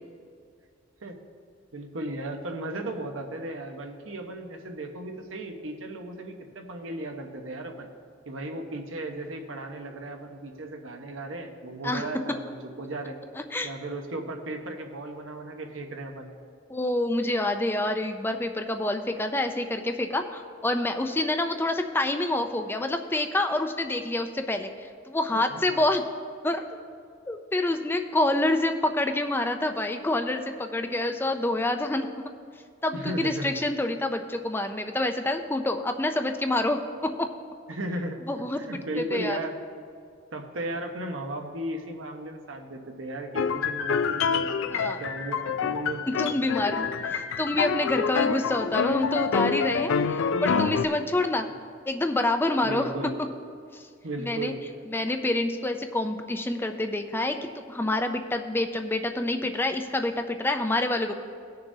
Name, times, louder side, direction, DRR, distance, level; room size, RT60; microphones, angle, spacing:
voice 1, 1.7-7.9 8.3-13.2 13.6-16.3 25.3-25.8 32.9-33.6 37.7-38.2 38.6-39.5 40.3-46.8 52.6-53.2 54.0-54.6, right 1 dB, 80° right, 3 dB, 1.0 m, -36 dB
voice 2, 13.3-13.7 16.7-26.0 26.4-26.6 27.3-32.1 32.8-37.3 38.3-38.6 39.0-39.4 44.7-45.0 46.2-51.5 51.8-52.9 53.7-53.8 54.2-54.5 54.9-61.1, left 2 dB, 10° left, 6 dB, 0.4 m, -27 dB
sound 1, 43.4-50.9, left 5 dB, 75° left, 0.4 m, -27 dB
18.0 x 6.7 x 2.7 m, 2.2 s
head